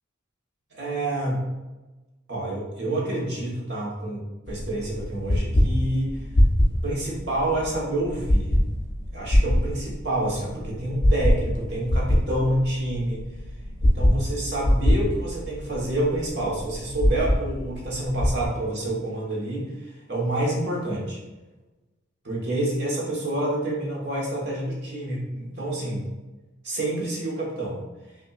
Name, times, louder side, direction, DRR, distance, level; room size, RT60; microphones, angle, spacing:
voice 1, 0.7-1.4 2.3-6.2 6.8-8.5 9.1-13.3 13.8-21.2 22.2-26.1 26.6-27.8, right 1 dB, 55° right, -3 dB, 1.3 m, -28 dB
sound 1, 4.5-18.4, left 1 dB, 40° left, 0.6 m, -23 dB
5.6 x 2.8 x 2.4 m, 1.1 s
head